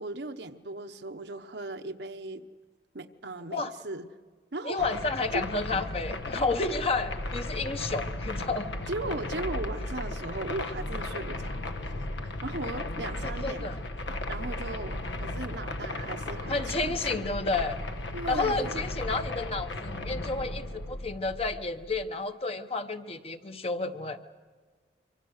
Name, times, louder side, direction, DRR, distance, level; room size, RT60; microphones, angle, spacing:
voice 1, 0.0-2.5 2.9-4.1 4.5-4.9 5.3-5.4 8.9-11.6 11.8-11.9 12.4-13.7 14.3-17.3 18.1-18.8, right 2 dB, 65° right, 7 dB, 1.0 m, -37 dB
voice 2, 4.6-8.7 13.2-13.8 16.5-17.8 18.3-24.2, left 3 dB, 30° left, 8 dB, 1.0 m, -31 dB
sound 1, 4.8-22.1, left 2 dB, 80° left, 1.2 m, -35 dB
26.0 x 24.5 x 6.5 m, 1.4 s
head